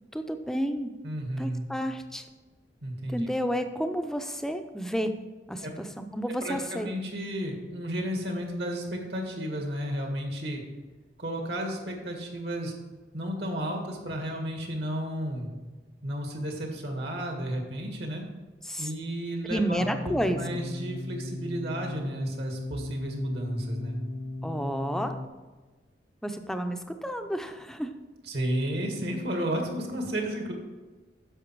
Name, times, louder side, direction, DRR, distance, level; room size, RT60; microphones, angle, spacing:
voice 1, 0.1-0.9 1.4-2.3 3.1-5.1 5.5-5.9 6.1-6.9 18.6-18.9 19.4-20.6 24.4-25.2 26.2-27.9, equal, 5° left, 7 dB, 0.5 m, -30 dB
voice 2, 1.0-1.6 2.8-3.3 5.6-5.7 6.4-10.6 11.2-12.7 13.1-15.5 16.0-18.2 18.8-19.8 20.1-24.0 28.2-30.5, right 1 dB, 65° right, 2 dB, 1.8 m, -32 dB
sound 1, 19.8-25.3, left 2 dB, 70° left, 1.0 m, -37 dB
10.0 x 6.6 x 4.6 m, 1.3 s
head